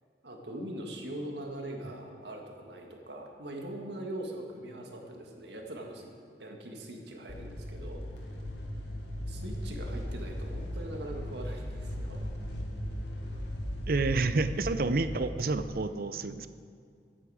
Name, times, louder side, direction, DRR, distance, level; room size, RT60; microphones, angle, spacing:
voice 1, 0.2-6.1 6.4-8.0 9.3-12.2, right 1 dB, 75° right, 2 dB, 1.8 m, -41 dB
sound 1, 7.3-15.6, equal, 80° left, 1.7 m, -37 dB
voice 2, 13.9-16.5, right 3 dB, 55° right, 11 dB, 0.5 m, -29 dB
15.0 x 9.9 x 4.9 m, 2.3 s
head